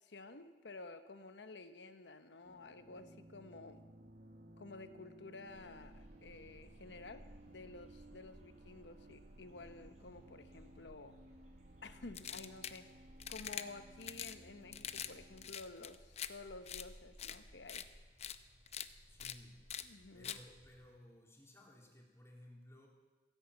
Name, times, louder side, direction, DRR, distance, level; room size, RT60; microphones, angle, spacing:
voice 1, 0.0-3.8 4.6-11.2 11.8-12.9 13.3-17.8 19.8-20.4, left 3 dB, 85° left, 10 dB, 1.0 m, -52 dB
sound 1, 2.4-15.5, right 1 dB, 60° right, 1.3 m, -60 dB
sound 2, 5.5-20.9, equal, 40° right, 3.1 m, -61 dB
sound 3, 12.1-12.8 13.2-13.6 14.0-14.4 14.7-15.1 15.4-16.3 16.7-16.8 17.2-17.4 17.7-17.8 18.2-18.4 18.7-18.9 19.2-19.3 19.7-19.8 20.2-20.4, left 9 dB, 40° left, 0.6 m, -44 dB
voice 2, 19.1-19.6 20.1-22.9, left 1 dB, 15° left, -1 dB, 3.0 m, -58 dB
15.5 x 11.0 x 8.2 m, 1.3 s
head